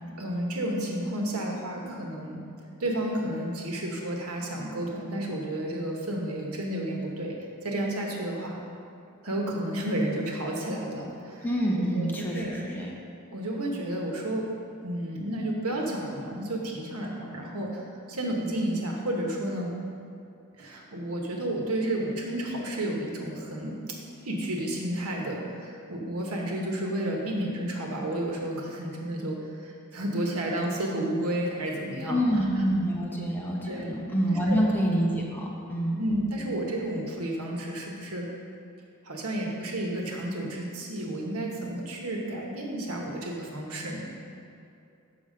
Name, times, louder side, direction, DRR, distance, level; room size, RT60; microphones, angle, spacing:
voice 1, 0.2-2.4 2.8-8.6 9.2-11.5 11.9-12.5 13.3-14.5 14.8-17.8 18.1-19.7 20.6-23.8 24.2-32.2 32.6-32.7 33.3-34.6 36.0-38.3 39.0-44.1, right 1 dB, 85° right, 0 dB, 1.2 m, -31 dB
voice 2, 11.4-12.9 32.1-36.0, equal, 10° left, -3 dB, 1.0 m, -27 dB
7.0 x 6.1 x 5.0 m, 2.7 s
head